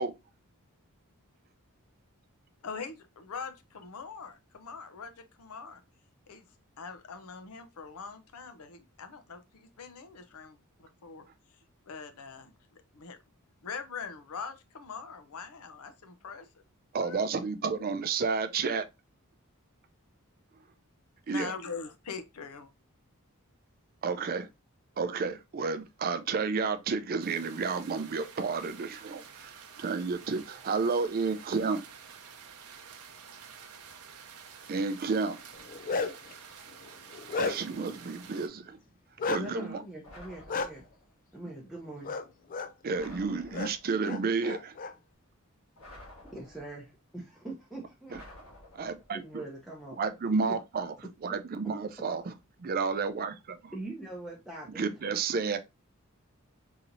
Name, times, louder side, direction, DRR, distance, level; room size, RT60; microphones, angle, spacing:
voice 1, 2.6-5.8 6.3-6.5 6.8-11.3 11.9-12.6 12.9-13.2 13.6-16.5 17.0-17.3 21.3-22.7, left 5 dB, 85° left, 0.6 m, -42 dB
voice 2, 16.9-18.8 21.3-21.5 24.0-24.5 25.0-31.8 34.7-35.4 37.4-38.8 39.3-39.8 42.8-44.7 48.7-49.2 50.0-50.9 51.2-52.3 52.6-53.7 54.8-55.6, right 4 dB, 40° right, 0.4 m, -31 dB
sound 1, 27.2-38.5, right 7 dB, 85° right, 0.7 m, -50 dB
Bark, 35.5-36.3 36.8-37.8 39.2-39.4 40.5-40.7 42.0-42.2 42.5-42.7 43.5-43.7 44.0-44.9, left 4 dB, 40° left, 0.4 m, -32 dB
voice 3, 39.4-40.8 41.3-42.1 46.3-48.2 49.1-50.5 53.7-55.0, right 2 dB, ahead, 0.7 m, -42 dB
sound 2, 40.0-41.1 42.9-44.0 45.8-46.9 48.1-49.2, left 1 dB, 65° left, 1.6 m, -51 dB
4.2 x 2.8 x 2.5 m
head